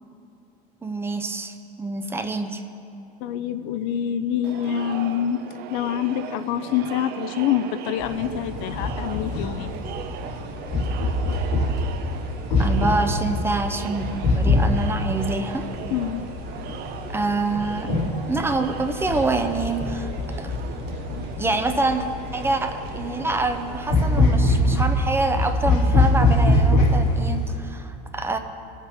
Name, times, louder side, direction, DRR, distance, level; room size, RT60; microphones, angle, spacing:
voice 1, 0.8-2.6 12.6-15.7 17.1-17.9 18.3-20.1 20.4-20.6 21.4-22.0 22.3-28.4, right 3 dB, 10° right, 6 dB, 0.6 m, -26 dB
voice 2, 3.2-5.5 5.7-9.7 15.9-16.2, left 10 dB, 65° left, 11 dB, 0.5 m, -26 dB
Crowd, 4.4-24.4, right 8 dB, 55° right, 0.7 m, -38 dB
sound 1, 8.0-27.6, left 2 dB, 90° left, 2.0 m, -24 dB
19.0 x 7.3 x 3.5 m, 2.8 s
supercardioid pair, 130°, 20 cm